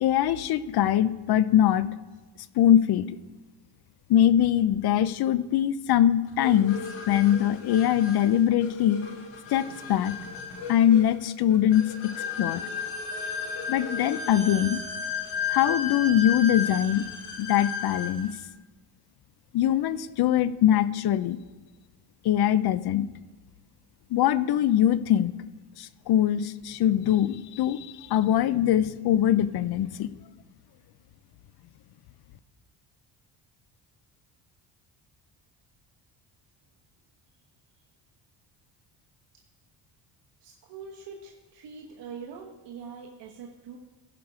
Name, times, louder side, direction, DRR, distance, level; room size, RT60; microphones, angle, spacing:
voice 1, 0.0-1.9 2.5-3.2 4.1-9.1 9.5-10.2 10.7-12.6 13.7-14.8 15.5-17.1 17.4-18.4 19.5-21.4 22.2-23.1 24.1-25.3 25.8-30.1, left 11 dB, 60° left, 16 dB, 0.6 m, -22 dB
sound 1, 6.4-18.3, left 5 dB, 80° left, 1.7 m, -34 dB
sound 2, 13.1-16.8, left 2 dB, 10° right, 1.4 m, -49 dB
voice 2, 40.4-43.8, right 5 dB, 70° right, 1 dB, 1.2 m, -43 dB
15.5 x 5.9 x 4.8 m, 1.2 s
cardioid pair, 105°, 44 cm